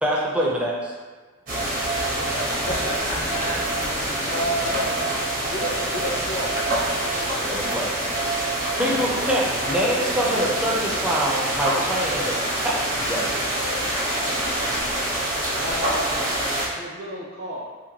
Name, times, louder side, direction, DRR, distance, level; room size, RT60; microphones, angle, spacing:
voice 1, 0.0-0.9 7.4-8.3 8.8-13.4, equal, 5° right, -4 dB, 0.4 m, -25 dB
sound 1, 1.5-16.7, right 1 dB, 40° right, 0.6 m, -26 dB
sound 2, 2.3-10.9, left 1 dB, 85° left, 1.1 m, -45 dB
voice 2, 2.3-6.6, equal, 55° left, -5 dB, 0.4 m, -31 dB
voice 3, 8.7-9.3 9.9-10.9 15.5-16.4 16.7-17.7, equal, 75° right, -6 dB, 0.9 m, -33 dB
2.8 x 2.1 x 2.9 m, 1.4 s
head